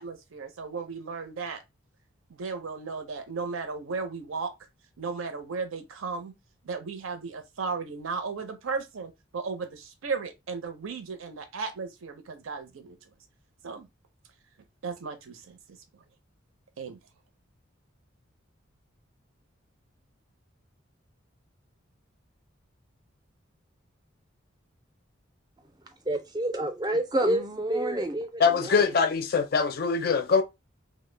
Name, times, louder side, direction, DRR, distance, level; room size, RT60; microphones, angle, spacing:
voice 1, 0.0-1.6 2.3-4.5 5.0-6.3 6.6-13.0 13.6-13.9 14.8-15.6 16.8-17.0, right 4 dB, 85° right, 0.5 m, -35 dB
voice 2, 26.1-28.9, right 1 dB, 20° right, 0.4 m, -28 dB
voice 3, 28.4-30.4, left 5 dB, 50° left, 0.4 m, -23 dB
2.0 x 2.0 x 3.1 m
head